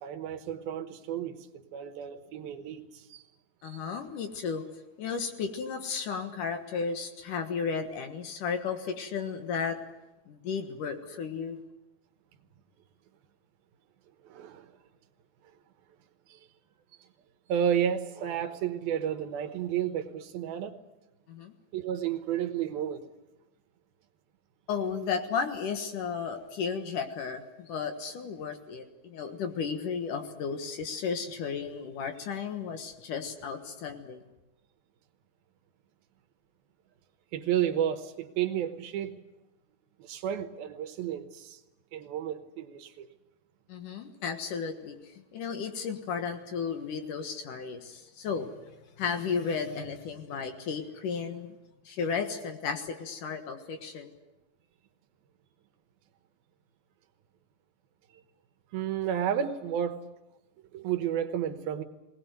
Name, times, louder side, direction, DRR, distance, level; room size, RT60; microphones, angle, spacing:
voice 1, 0.0-3.2 14.2-14.7 16.3-16.4 17.5-20.7 21.7-23.0 37.3-39.2 40.0-41.6 41.9-43.1 58.7-60.0 60.7-61.8, right 9 dB, 75° right, 8 dB, 2.9 m, -32 dB
voice 2, 3.6-4.6 5.0-9.8 10.3-11.6 21.3-21.5 24.7-34.3 43.7-48.5 48.8-51.6 51.8-54.1, left 6 dB, 60° left, 7 dB, 2.8 m, -34 dB
20.5 x 19.0 x 9.3 m, 1.0 s
omnidirectional pair, 4.5 m